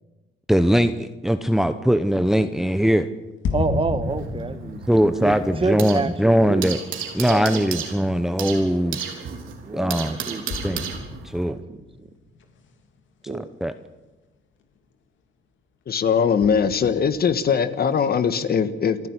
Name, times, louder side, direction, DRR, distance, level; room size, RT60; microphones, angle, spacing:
voice 1, 0.5-3.1 4.9-6.8 7.1-9.0 9.7-10.2 10.6-10.8 11.2-11.6 13.2-13.3 13.6-13.7, equal, ahead, 10 dB, 0.9 m, -20 dB
sound 1, 3.4-8.2 8.8-8.9 10.5-12.7 13.4-13.5 16.4-17.8, left 3 dB, 70° left, 2.9 m, -33 dB
voice 2, 3.5-6.7 7.2-7.8 9.6-10.9 11.5-11.8 13.3-13.5, right 3 dB, 25° right, 12 dB, 1.5 m, -28 dB
sound 2, 4.0-6.1 6.4-11.5, right 7 dB, 85° right, 3.6 m, -33 dB
voice 3, 15.9-19.1, left 6 dB, 50° left, 12 dB, 1.6 m, -21 dB
29.0 x 10.5 x 9.8 m, 1.2 s
cardioid pair, 90°, 20 cm